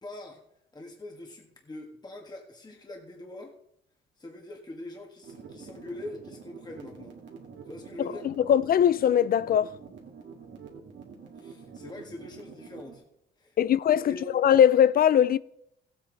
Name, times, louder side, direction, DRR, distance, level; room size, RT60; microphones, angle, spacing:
voice 1, 0.0-0.4 0.7-3.6 4.2-7.1 7.7-8.3 11.4-13.0 13.4-13.6 13.9-14.3, left 1 dB, 20° left, 1.7 m, -43 dB
sound 1, 5.2-12.9, right 5 dB, 65° right, 2.2 m, -46 dB
voice 2, 8.2-9.7 13.6-15.4, left 9 dB, 50° left, 0.4 m, -21 dB
15.0 x 8.4 x 4.0 m
cardioid pair, 90°, 20 cm